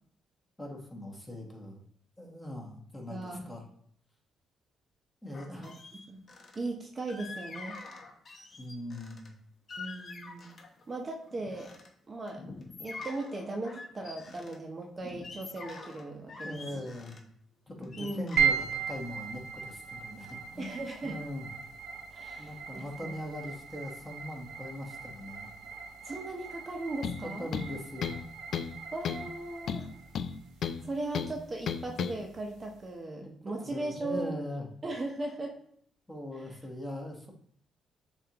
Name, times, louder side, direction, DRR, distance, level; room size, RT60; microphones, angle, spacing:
voice 1, 0.6-1.8 2.2-3.6 5.2-5.7 8.6-9.3 16.4-17.2 17.7-20.8 21.0-21.5 22.4-25.5 27.2-28.2 33.2-33.3 33.6-34.7 36.1-37.3, left 1 dB, 10° left, -1 dB, 1.2 m, -41 dB
voice 2, 3.1-3.4 5.5-5.7 6.1-6.2 6.6-7.8 9.8-10.6 10.9-11.7 12.1-12.4 12.8-16.9 18.0-18.3 20.6-21.2 22.1-23.2 26.0-27.5 28.9-29.9 30.8-34.4 34.8-35.5 36.4-36.6, right 2 dB, 30° right, 1 dB, 0.7 m, -38 dB
sound 1, 5.3-6.6 7.1-9.3 9.7-10.8 11.3-11.9 12.3-14.6 15.0-17.2 17.7-19.9 20.2-20.5, left 3 dB, 40° left, 0.9 m, -46 dB
sound 2, 18.4-32.8, right 7 dB, 85° right, 0.6 m, -38 dB
sound 3, 27.0-27.2 27.5-28.2 28.5-28.8 29.0-29.3 29.7-30.8 31.1-31.3 31.7-32.1, left 7 dB, 65° left, 0.4 m, -33 dB
6.7 x 2.5 x 2.9 m, 0.64 s
cardioid pair, 90°, 0 cm